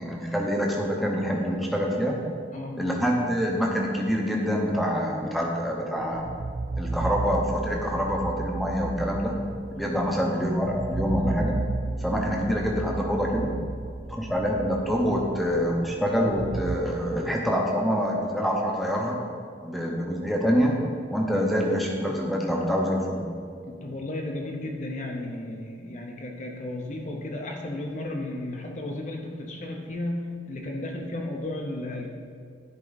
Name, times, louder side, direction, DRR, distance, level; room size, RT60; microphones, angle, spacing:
voice 1, 0.0-2.2 2.7-6.3 6.8-9.4 9.8-11.6 12.0-13.5 14.1-19.2 19.6-20.7 21.1-23.3, equal, ahead, -2 dB, 0.7 m, -26 dB
voice 2, 2.5-2.9 9.7-10.0 23.7-32.1, left 1 dB, 40° left, 1 dB, 0.6 m, -34 dB
sound 1, 5.7-16.8, right 2 dB, 25° right, 0.3 m, -33 dB
10.5 x 4.4 x 4.0 m, 2.2 s
head